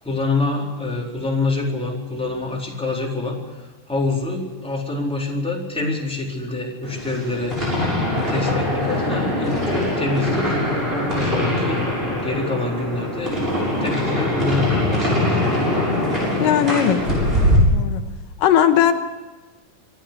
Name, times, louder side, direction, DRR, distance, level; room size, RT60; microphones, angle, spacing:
voice 1, 0.0-7.6 8.2-10.6 10.9-11.8 12.2-13.4 13.8-15.4, left 3 dB, ahead, -2 dB, 3.8 m, -26 dB
sound 1, 6.8-17.6, left 1 dB, 15° right, 7.1 m, -22 dB
voice 2, 16.4-17.0 17.3-18.0 18.4-18.9, left 10 dB, 85° left, 7 dB, 2.8 m, -18 dB
25.5 x 11.5 x 9.9 m, 1.3 s
omnidirectional pair, 3.9 m